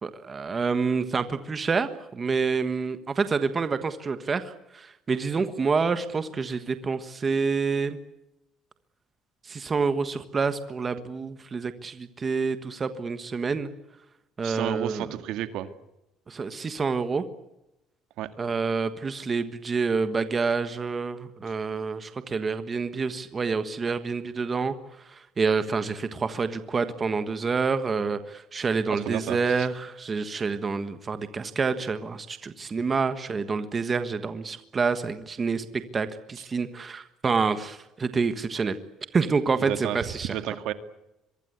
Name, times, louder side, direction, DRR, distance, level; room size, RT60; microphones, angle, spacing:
voice 1, 0.0-8.0 9.4-13.7 14.4-15.1 16.3-17.2 18.4-24.7 25.0-35.6 35.9-38.8 39.1-40.3, right 4 dB, 25° right, 10 dB, 1.5 m, -28 dB
voice 2, 14.4-15.7 18.2-18.3 28.9-29.7 36.4-36.5 39.6-40.7, right 12 dB, 70° right, 10 dB, 2.1 m, -32 dB
26.0 x 23.5 x 8.2 m, 0.92 s
cardioid pair, 155°, 0 cm